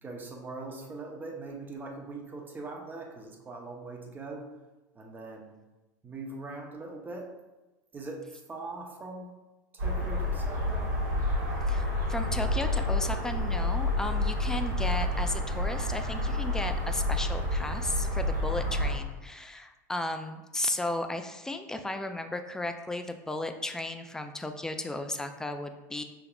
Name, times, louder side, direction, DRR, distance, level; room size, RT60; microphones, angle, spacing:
voice 1, 0.0-4.5 4.9-5.5 6.0-7.3 7.9-9.3 9.7-10.9, right 3 dB, 20° right, 1 dB, 0.7 m, -41 dB
sound 1, 9.8-18.9, left 1 dB, 90° right, 1.5 m, -29 dB
voice 2, 11.7-26.0, left 2 dB, 5° left, 7 dB, 0.3 m, -35 dB
5.6 x 3.5 x 2.3 m, 1.1 s
supercardioid pair, 115°, 10 cm